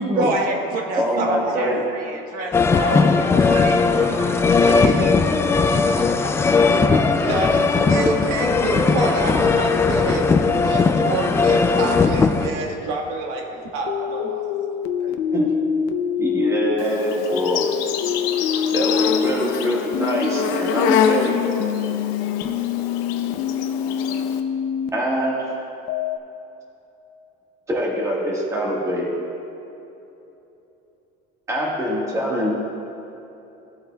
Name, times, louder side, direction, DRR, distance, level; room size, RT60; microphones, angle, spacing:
voice 1, 0.0-4.3 4.7-6.6, right 2 dB, 45° right, 1 dB, 1.2 m, -28 dB
voice 2, 1.0-1.8 15.1-15.6 16.2-17.7 18.7-21.4 24.9-25.5 27.7-29.1 31.5-32.6, equal, 15° right, -3 dB, 1.5 m, -24 dB
sound 1, 2.5-12.5, left 4 dB, 15° left, 0.3 m, -18 dB
voice 3, 7.1-14.5 14.7-15.2, right 2 dB, 80° right, 1 dB, 1.4 m, -28 dB
sound 2, 13.9-19.3 19.9-24.9 25.9-26.2, left 8 dB, 60° left, 0.6 m, -25 dB
Insect, 16.8-24.4, left 8 dB, 90° left, 0.7 m, -26 dB
17.0 x 7.9 x 2.3 m, 2.9 s
cardioid pair, 175°, 20 cm